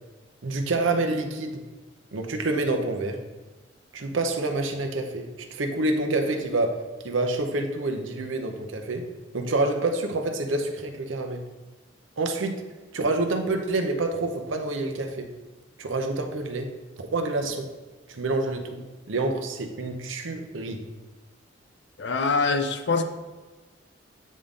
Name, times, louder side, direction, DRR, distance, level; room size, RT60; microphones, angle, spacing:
voice 1, 0.4-1.7 2.1-3.2 3.9-9.1 9.3-11.4 12.2-12.6 12.9-15.3 15.8-17.7 18.1-20.8, right 2 dB, 85° right, 4 dB, 0.7 m, -27 dB
voice 2, 22.0-23.0, left 4 dB, 60° left, 8 dB, 0.5 m, -24 dB
8.4 x 3.7 x 3.7 m, 1.2 s
head